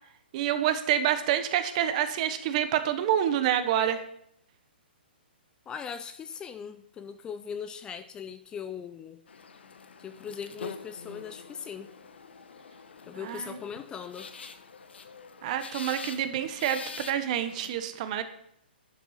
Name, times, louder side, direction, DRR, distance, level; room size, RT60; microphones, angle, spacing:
voice 1, 0.3-4.0 13.2-13.6 15.4-18.2, right 10 dB, 40° right, 11 dB, 1.0 m, -27 dB
voice 2, 5.7-9.2 10.0-11.9 13.1-14.3, left 7 dB, 15° left, 11 dB, 0.4 m, -39 dB
sound 1, 9.3-17.7, left 5 dB, 80° left, 1.0 m, -45 dB
10.5 x 6.1 x 5.7 m, 0.73 s
hypercardioid pair, 140°, 6 cm